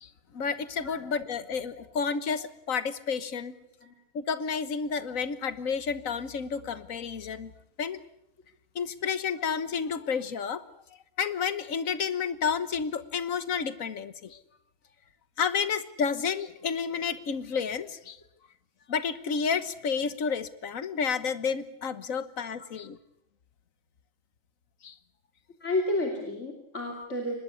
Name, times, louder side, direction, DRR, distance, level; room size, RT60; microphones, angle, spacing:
voice 1, 0.0-3.5 4.1-7.5 7.8-8.0 8.8-10.6 11.2-14.4 15.4-18.2 18.9-23.0 24.8-25.0, left 6 dB, 90° left, 13 dB, 1.6 m, -31 dB
voice 2, 25.6-27.4, left 1 dB, 65° left, 1 dB, 3.2 m, -31 dB
24.5 x 20.0 x 8.4 m, 0.75 s
omnidirectional pair, 1.4 m